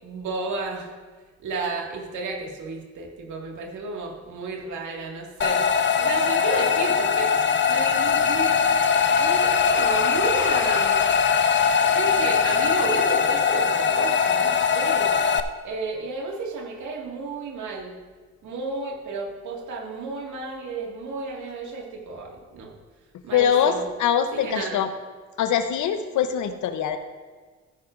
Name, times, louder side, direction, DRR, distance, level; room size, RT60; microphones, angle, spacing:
voice 1, 0.0-0.9 1.4-5.6 6.0-7.3 7.7-8.5 9.2-11.1 11.8-15.1 15.6-18.0 18.4-22.8 23.2-23.9 24.3-24.8, right 3 dB, 75° right, 0 dB, 2.1 m, -32 dB
sound 1, 5.4-15.4, left 6 dB, 40° left, 0.7 m, -21 dB
voice 2, 23.3-24.9 25.4-27.0, left 8 dB, 75° left, 8 dB, 0.9 m, -23 dB
14.0 x 10.0 x 2.6 m, 1.4 s
cardioid pair, 90°, 30 cm